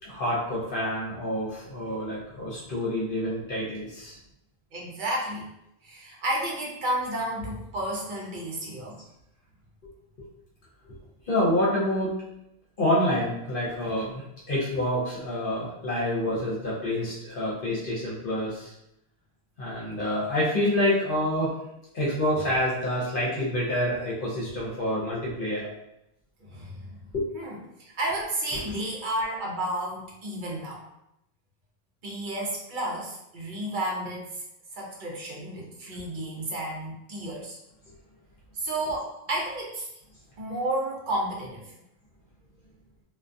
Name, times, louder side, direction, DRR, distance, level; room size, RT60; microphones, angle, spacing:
voice 1, 0.0-4.1 11.2-12.1 12.8-18.7 19.6-21.5 21.9-25.7 27.1-27.2, left 1 dB, 60° left, -6 dB, 0.8 m, -27 dB
voice 2, 4.7-5.5 5.8-9.0 16.2-16.4 26.4-27.0 27.3-27.6 28.0-30.8 32.0-34.4 34.7-37.6 38.5-39.9 40.4-41.7, right 1 dB, 55° right, -2 dB, 0.7 m, -32 dB
2.3 x 2.2 x 2.5 m, 0.84 s
omnidirectional pair, 1.1 m